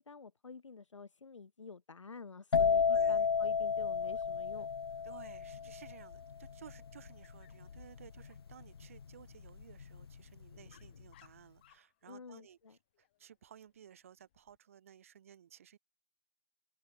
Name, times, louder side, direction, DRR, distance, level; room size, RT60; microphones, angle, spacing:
voice 1, 0.0-4.7 4.9-5.1 12.1-12.7, left 4 dB, 85° left, 1.1 m, -50 dB
sound 1, 2.5-10.1 10.4-10.9, left 6 dB, 55° left, 0.5 m, -32 dB
voice 2, 2.9-3.3 5.0-15.8, right 9 dB, 30° right, 1.6 m, -57 dB
Dog, 4.0-14.6, left 15 dB, 20° left, 6.3 m, -72 dB
open air
hypercardioid pair, 170°, 15 cm